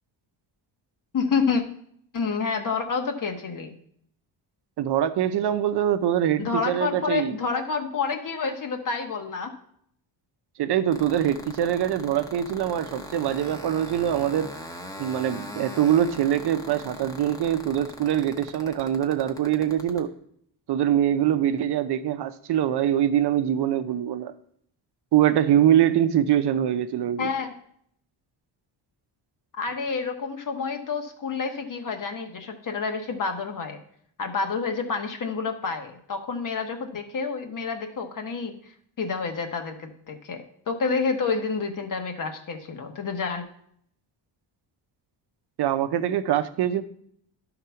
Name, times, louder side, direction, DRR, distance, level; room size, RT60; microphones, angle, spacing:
voice 1, 1.1-1.6 2.1-3.7 6.4-9.5 27.2-27.5 29.6-33.8 34.2-38.5 39.0-43.4, left 5 dB, 45° left, 5 dB, 1.1 m, -28 dB
voice 2, 4.8-7.4 10.6-14.5 15.0-20.1 20.7-24.3 25.1-27.3 45.6-46.8, right 10 dB, 60° right, 12 dB, 0.7 m, -23 dB
sound 1, 10.9-20.0, left 1 dB, 10° left, 1.0 m, -39 dB
11.5 x 3.9 x 5.7 m, 0.67 s
wide cardioid pair, 150°, 44 cm